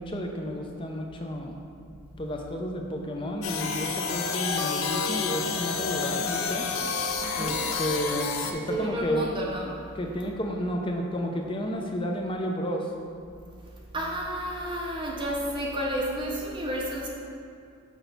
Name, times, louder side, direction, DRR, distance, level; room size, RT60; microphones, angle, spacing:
voice 1, 0.0-1.6 2.2-6.7 7.4-9.3 10.0-12.9, equal, 25° left, 2 dB, 0.6 m, -31 dB
sound 1, 3.4-8.5, left 5 dB, 90° left, 0.6 m, -29 dB
voice 2, 7.2-7.7 8.7-9.8 13.9-17.1, right 1 dB, 25° right, -2 dB, 0.6 m, -31 dB
6.2 x 5.5 x 4.0 m, 2.5 s
head